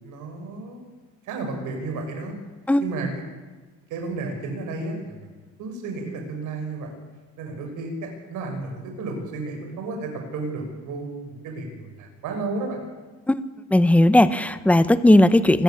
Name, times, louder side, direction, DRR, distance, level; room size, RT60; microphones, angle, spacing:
voice 1, 0.0-0.8 1.2-2.4 2.8-3.1 3.9-6.9 7.4-12.8, right 3 dB, 85° right, 4 dB, 5.8 m, -32 dB
voice 2, 13.7-15.6, left 1 dB, 5° left, 13 dB, 0.9 m, -16 dB
25.0 x 14.0 x 8.9 m, 1.3 s
cardioid pair, 145°, 30 cm